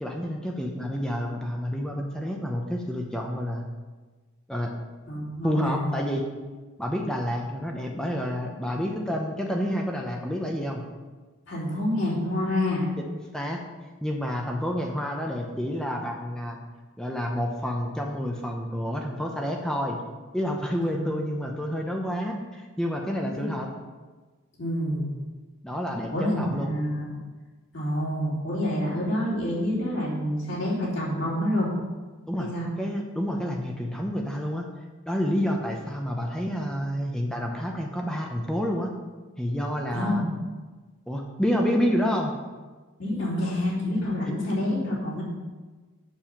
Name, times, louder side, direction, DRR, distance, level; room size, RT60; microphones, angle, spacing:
voice 1, 0.0-3.7 4.5-4.7 5.4-6.3 6.8-10.8 13.1-13.6 14.0-16.6 17.0-20.0 20.3-23.7 25.6-26.7 32.3-32.5 32.8-34.7 35.1-38.9 39.4-40.2 41.1-42.4, equal, 5° left, 0 dB, 0.8 m, -29 dB
voice 2, 5.1-5.9 11.5-12.9 20.9-21.1 23.2-23.5 24.6-25.1 26.1-27.2 27.7-31.7 32.4-32.7 39.9-40.3 43.0-45.2, left 1 dB, 55° left, -6 dB, 3.4 m, -27 dB
7.2 x 7.1 x 5.9 m, 1.3 s
head